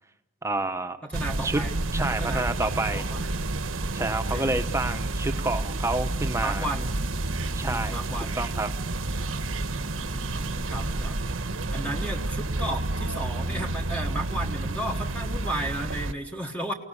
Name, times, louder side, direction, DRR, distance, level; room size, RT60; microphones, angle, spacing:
voice 1, 0.4-1.0 1.4-1.6 1.9-3.0 3.9-6.7 7.5-8.7, right 2 dB, 15° right, 8 dB, 1.1 m, -29 dB
voice 2, 1.0-1.7 2.1-3.3 4.3-4.5 6.4-6.9 7.6-8.4 9.1-9.3 9.9-11.2 11.5-16.7, right 1 dB, 5° left, 2 dB, 1.3 m, -34 dB
sound 1, 1.1-16.1, right 2 dB, 80° right, 1.2 m, -30 dB
28.5 x 18.0 x 9.8 m, 1.1 s
head